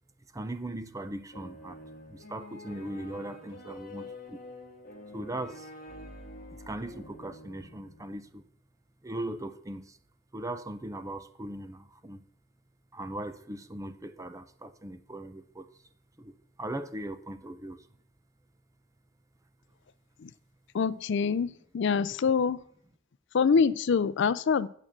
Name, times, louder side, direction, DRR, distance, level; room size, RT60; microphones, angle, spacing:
voice 1, 0.3-1.8 2.1-4.4 5.1-5.7 6.5-8.4 9.0-10.0 10.3-12.3 12.9-15.7 16.2-17.9, right 1 dB, 15° right, 0.7 m, -39 dB
sound 1, 1.3-8.3, left 1 dB, 45° left, 1.7 m, -47 dB
voice 2, 20.7-22.6 23.3-24.7, left 5 dB, 65° left, 0.4 m, -25 dB
8.9 x 8.6 x 7.4 m
head